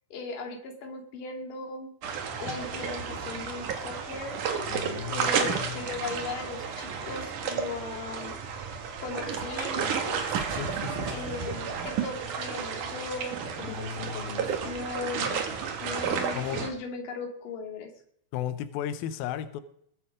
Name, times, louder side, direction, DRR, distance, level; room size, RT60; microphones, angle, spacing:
voice 1, 0.1-1.9 2.4-4.4 5.1-8.4 9.0-10.2 11.1-15.4 15.8-17.9, left 3 dB, 50° left, 4 dB, 3.5 m, -38 dB
sound 1, 2.0-16.7, right 6 dB, 55° right, 2.4 m, -32 dB
voice 2, 4.7-5.8 10.5-11.2 13.6-14.5 16.4-16.7 18.3-19.6, left 10 dB, 85° left, 11 dB, 2.1 m, -35 dB
21.0 x 9.8 x 5.0 m, 0.66 s
omnidirectional pair, 5.4 m